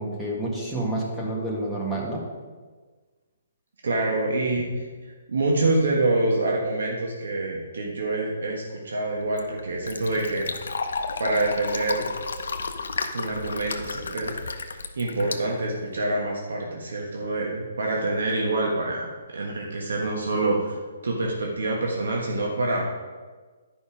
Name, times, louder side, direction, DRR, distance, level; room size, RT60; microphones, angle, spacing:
voice 1, 0.0-2.2, right 1 dB, 5° right, -5 dB, 1.8 m, -29 dB
voice 2, 3.8-4.9 5.3-10.5 11.2-12.1 13.1-14.7 14.9-20.8 21.0-22.9, right 2 dB, 80° right, -1 dB, 1.4 m, -26 dB
Fill (with liquid), 9.1-16.2, left 4 dB, 80° left, 0.8 m, -33 dB
10.5 x 5.3 x 5.0 m, 1.4 s
hypercardioid pair, 155°, 0 cm